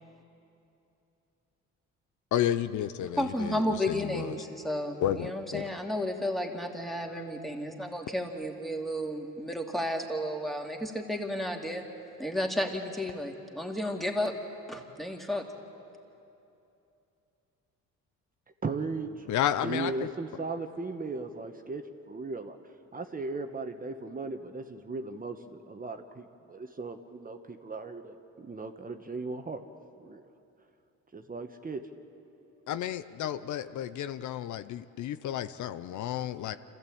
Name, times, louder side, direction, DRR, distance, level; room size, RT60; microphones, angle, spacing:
voice 1, 2.3-4.3 5.0-5.7 19.3-20.1 32.7-36.6, left 11 dB, 75° left, 12 dB, 0.7 m, -32 dB
voice 2, 3.2-11.9 12.2-14.3 14.7-15.4, left 1 dB, ahead, 1 dB, 2.5 m, -32 dB
voice 3, 18.6-19.1 19.6-22.6 22.9-29.6 30.0-30.2 31.1-31.8, right 3 dB, 30° right, 6 dB, 1.3 m, -37 dB
26.5 x 15.0 x 8.7 m, 2.8 s
cardioid pair, 90°, 30 cm